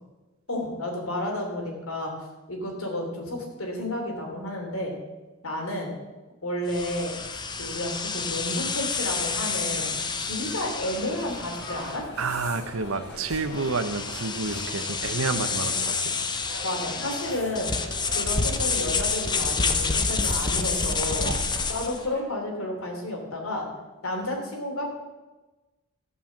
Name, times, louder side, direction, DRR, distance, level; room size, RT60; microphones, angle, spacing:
voice 1, 0.5-2.1 2.5-4.9 5.4-5.9 6.4-7.1 7.6-12.0 16.6-17.7 18.0-21.3 21.7-23.7 24.0-24.9, left 1 dB, 85° left, 1 dB, 3.2 m, -31 dB
sound 1, 6.7-22.0, left 4 dB, 20° left, 0.7 m, -29 dB
sound 2, 9.0-22.2, left 2 dB, 55° left, 2.2 m, -43 dB
voice 2, 12.2-16.2 21.2-21.5, right 4 dB, 90° right, 10 dB, 0.9 m, -29 dB
14.5 x 5.6 x 7.3 m, 1.2 s
head